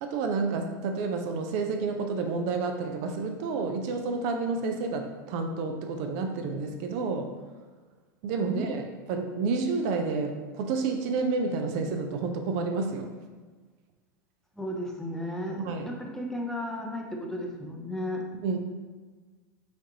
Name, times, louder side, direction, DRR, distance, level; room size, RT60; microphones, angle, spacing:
voice 1, 0.0-7.3 8.2-13.1 15.6-15.9 18.4-18.6, right 4 dB, 55° right, 5 dB, 0.5 m, -30 dB
voice 2, 8.4-8.8 14.6-18.2, left 1 dB, 5° left, 0 dB, 0.6 m, -34 dB
5.1 x 2.6 x 2.8 m, 1.4 s
hypercardioid pair, 100°, 10 cm